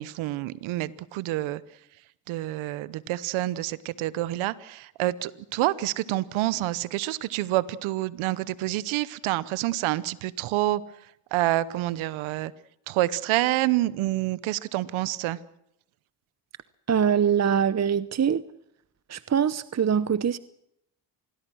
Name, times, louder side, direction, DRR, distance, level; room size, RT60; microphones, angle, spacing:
voice 1, 0.0-1.6 2.3-10.8 11.3-12.5 12.9-15.4, right 16 dB, 90° right, 0.9 m, -27 dB
voice 2, 16.9-18.4 19.1-20.4, right 8 dB, 35° right, 0.8 m, -23 dB
27.0 x 20.5 x 6.3 m
supercardioid pair, 55°, 46 cm